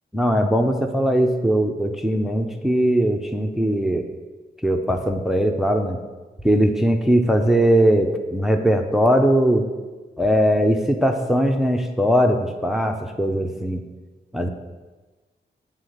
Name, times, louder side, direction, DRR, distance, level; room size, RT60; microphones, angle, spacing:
voice 1, 0.1-4.1 4.6-6.0 6.4-9.7 10.2-13.8 14.3-14.5, equal, ahead, 5 dB, 0.4 m, -20 dB
8.9 x 3.8 x 6.4 m, 1.3 s
wide cardioid pair, 145°, 19 cm